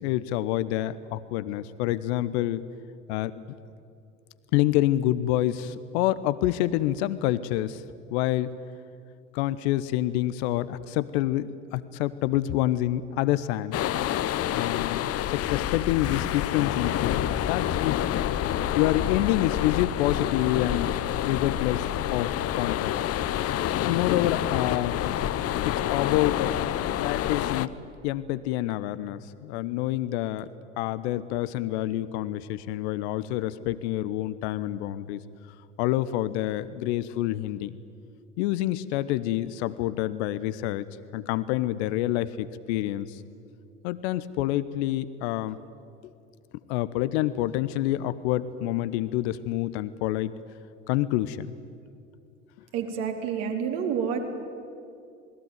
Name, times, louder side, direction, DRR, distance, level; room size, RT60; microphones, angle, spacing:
voice 1, 0.0-2.7 3.1-3.3 4.5-7.8 8.1-8.5 9.3-13.8 14.5-18.0 18.7-20.9 21.3-23.2 23.8-25.0 25.6-26.5 27.0-27.7 28.0-30.5 30.8-35.2 35.8-37.7 38.4-40.9 41.1-43.2 43.8-45.6 46.7-50.3 50.9-51.5, left 14 dB, 60° left, 15 dB, 1.1 m, -27 dB
sound 1, 13.7-27.7, left 11 dB, 40° left, 1.0 m, -28 dB
voice 2, 52.7-54.3, right 7 dB, 60° right, 3 dB, 4.0 m, -29 dB
28.0 x 21.0 x 9.5 m, 2.4 s
figure-of-eight pair, 65°, 37 cm